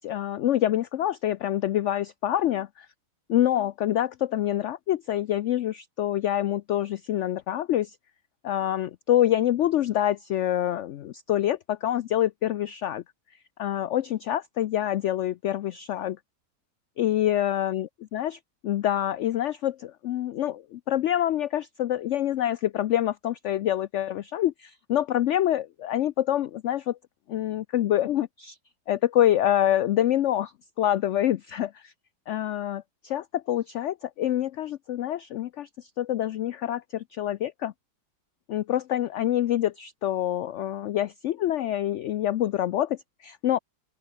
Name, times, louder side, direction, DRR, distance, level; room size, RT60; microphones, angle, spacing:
voice 1, 0.0-2.9 3.3-8.0 8.4-13.0 13.6-16.2 17.0-27.0 27.3-28.6 28.9-30.5 30.8-31.9 32.3-37.7 38.5-43.6, left 12 dB, 70° left, 0.7 m, -26 dB
open air
omnidirectional pair, 1.8 m